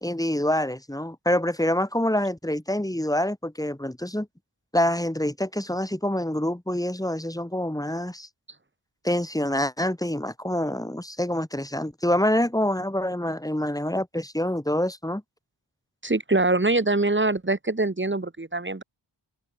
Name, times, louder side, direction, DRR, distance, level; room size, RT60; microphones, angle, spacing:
voice 1, 0.0-4.3 4.7-8.3 9.0-15.2, left 1 dB, 10° left, 2.5 m, -26 dB
voice 2, 16.0-18.8, right 2 dB, 25° right, 2.1 m, -23 dB
open air
wide cardioid pair, 65°, 44 cm